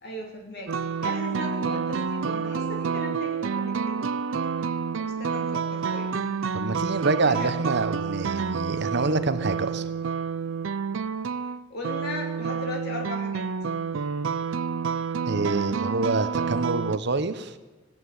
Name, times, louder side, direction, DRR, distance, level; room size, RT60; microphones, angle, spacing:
voice 1, 0.0-4.1 4.6-4.7 5.0-6.1 7.2-7.5 11.7-13.5, left 1 dB, 55° left, 2 dB, 3.0 m, -37 dB
sound 1, 0.7-17.0, right 6 dB, 90° right, 0.5 m, -29 dB
voice 2, 6.5-9.9 15.3-17.5, right 3 dB, 60° right, 11 dB, 1.0 m, -26 dB
17.5 x 9.3 x 8.0 m, 1.2 s
head